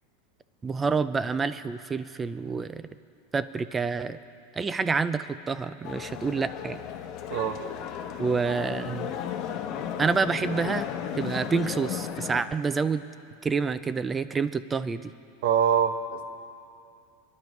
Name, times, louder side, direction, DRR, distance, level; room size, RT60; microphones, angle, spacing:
voice 1, 0.6-2.9 3.3-4.2 4.6-6.8 8.2-9.1 10.0-10.9 11.2-13.1 13.4-15.1, right 5 dB, 15° right, 14 dB, 0.4 m, -28 dB
sound 1, 5.8-12.4, left 9 dB, 40° left, 1.0 m, -34 dB
voice 2, 15.4-16.2, right 8 dB, 65° right, 7 dB, 1.1 m, -24 dB
29.0 x 10.5 x 3.1 m, 2.5 s
supercardioid pair, 150°, 0 cm